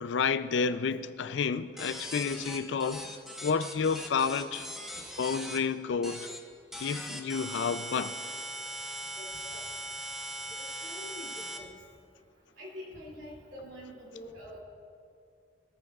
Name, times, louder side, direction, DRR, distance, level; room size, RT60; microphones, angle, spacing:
voice 1, 0.0-3.1 3.4-4.7 5.2-6.3 6.8-8.1, left 5 dB, 70° left, 0.4 m, -30 dB
sound 1, 1.8-5.6 6.0-6.4 6.7-11.6, right 1 dB, ahead, 1.0 m, -40 dB
voice 2, 9.1-9.7 10.6-11.7 12.6-14.6, left 1 dB, 75° right, 2.8 m, -46 dB
20.5 x 14.0 x 2.4 m
head